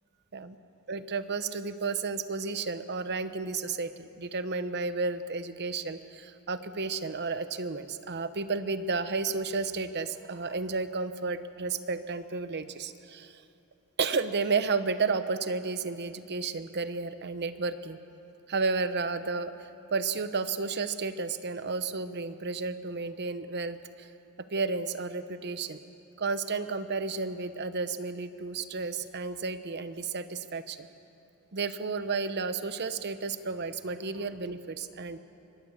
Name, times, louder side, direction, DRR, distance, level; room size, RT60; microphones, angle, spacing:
voice 1, 0.9-13.4 14.0-18.0 18.5-24.1 24.5-25.8 26.2-30.9 31.5-35.2, right 4 dB, 50° right, 11 dB, 0.9 m, -32 dB
25.0 x 19.0 x 7.2 m, 2.8 s
head